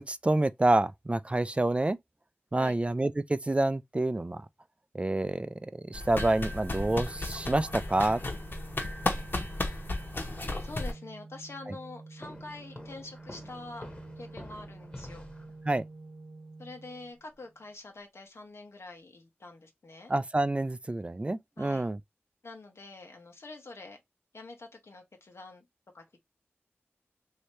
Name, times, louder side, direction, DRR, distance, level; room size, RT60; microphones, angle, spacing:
voice 1, 0.0-2.0 2.5-4.4 4.9-8.2 15.7-15.8 20.1-22.0, right 2 dB, 25° right, 0.3 m, -28 dB
sound 1, 5.9-10.9, left 2 dB, 55° left, 1.0 m, -34 dB
Organ, 6.7-17.6, right 3 dB, 75° right, 0.7 m, -49 dB
voice 2, 9.4-9.9 10.6-13.9 14.2-15.3 16.6-20.1 21.6-21.9 22.4-24.0 24.3-25.6 25.9-26.2, left 3 dB, 85° left, 1.0 m, -46 dB
sound 2, 12.2-15.9, left 1 dB, 25° left, 1.0 m, -48 dB
3.2 x 2.7 x 3.1 m
wide cardioid pair, 55°, 4 cm